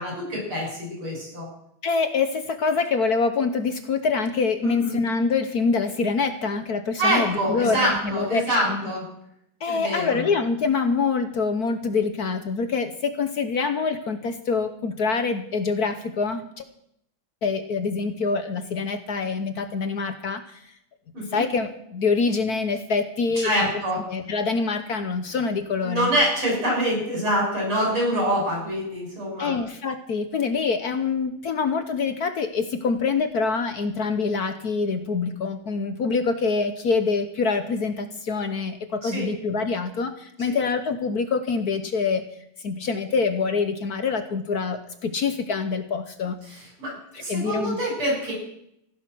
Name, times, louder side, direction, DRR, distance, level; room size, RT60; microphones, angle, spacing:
voice 1, 0.0-1.5 4.6-5.0 7.0-9.0 9.7-10.2 21.1-21.4 23.4-24.0 25.8-29.6 39.0-39.2 46.8-48.3, equal, 85° right, -1 dB, 7.6 m, -25 dB
voice 2, 1.8-8.9 9.6-16.6 17.4-20.6 21.3-23.5 24.1-26.1 29.4-42.2 42.6-46.4 47.1-47.8, left 4 dB, 55° left, 9 dB, 1.3 m, -25 dB
15.5 x 11.5 x 6.2 m, 0.73 s
omnidirectional pair, 2.3 m